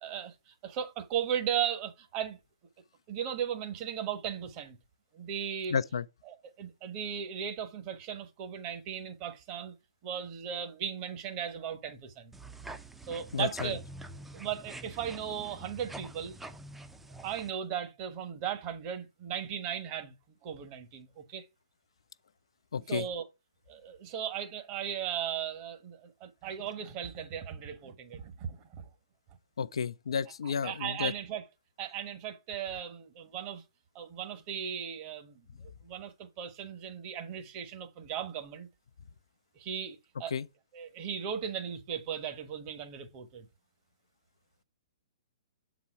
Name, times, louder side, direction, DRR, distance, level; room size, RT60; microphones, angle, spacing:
voice 1, 0.0-2.4 3.1-4.8 5.1-5.8 6.3-9.7 10.0-12.3 13.1-13.8 14.3-16.4 17.2-20.1 20.4-21.5 22.9-23.3 23.7-28.9 30.4-31.4 31.8-33.6 33.9-35.5 35.8-38.7 39.5-40.3 40.7-43.5, right 8 dB, 35° right, 1.2 m, -37 dB
voice 2, 5.7-6.0 13.3-13.7 22.7-23.1 29.6-31.1 40.3-40.4, left 6 dB, 65° left, 0.4 m, -31 dB
sound 1, 12.3-17.5, right 2 dB, 5° right, 0.6 m, -46 dB
7.5 x 4.2 x 4.5 m
figure-of-eight pair, 120°, 3 cm